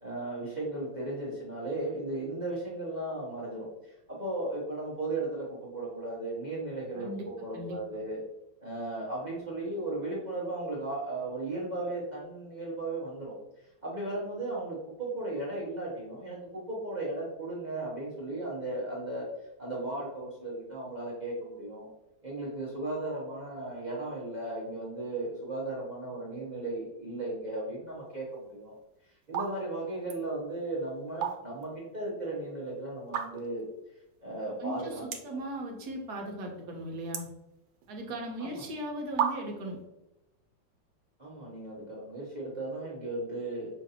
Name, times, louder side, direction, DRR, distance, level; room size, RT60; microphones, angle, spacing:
voice 1, 0.0-8.2 8.6-13.3 13.8-19.3 19.6-21.9 22.2-28.7 29.1-33.6 34.2-35.4 38.4-38.6 41.2-43.7, right 2 dB, 45° right, -6 dB, 0.5 m, -36 dB
voice 2, 6.9-7.3 7.5-7.8 34.6-37.3 37.9-39.8, right 1 dB, 65° right, 1 dB, 1.2 m, -38 dB
sound 1, 28.5-28.8 29.2-29.5 29.8-30.2 31.0-31.7 32.1-32.2 33.0-33.6 34.1-34.2 34.4-34.5 35.0-35.4 35.8-36.3 36.6-38.0 38.7-38.8 39.2-39.7, right 8 dB, 85° right, 1.4 m, -33 dB
5.7 x 2.5 x 2.7 m, 0.92 s
omnidirectional pair, 2.0 m